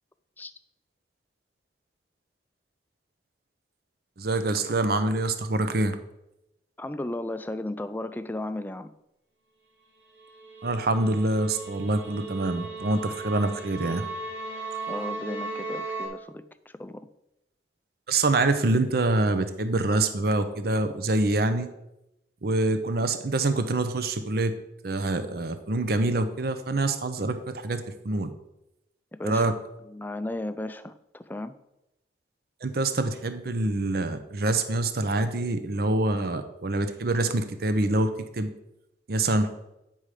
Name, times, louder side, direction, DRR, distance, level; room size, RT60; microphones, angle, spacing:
voice 1, 4.2-6.0 10.6-14.0 18.1-21.7 22.4-24.5 24.8-28.3 29.2-29.5 32.6-38.5 39.1-39.6, right 2 dB, 55° right, 9 dB, 0.7 m, -25 dB
voice 2, 6.8-8.9 14.5-17.1 29.2-29.5 29.8-31.6 39.2-39.4, left 1 dB, 10° left, 11 dB, 0.3 m, -35 dB
sound 1, 10.2-16.1, right 3 dB, 90° right, 2.0 m, -36 dB
8.9 x 5.5 x 4.9 m, 0.87 s
head